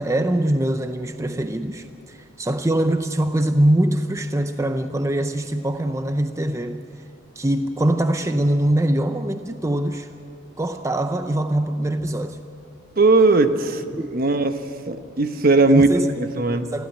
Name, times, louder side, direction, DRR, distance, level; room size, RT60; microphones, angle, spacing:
voice 1, 0.0-6.8 7.4-10.1 10.6-12.4 13.9-14.1 15.7-16.1 16.7-16.9, right 1 dB, 15° right, 8 dB, 0.6 m, -23 dB
voice 2, 13.0-14.5 14.9-15.9 16.2-16.7, right 3 dB, 50° right, 8 dB, 1.1 m, -18 dB
21.0 x 15.5 x 9.1 m, 2.4 s
head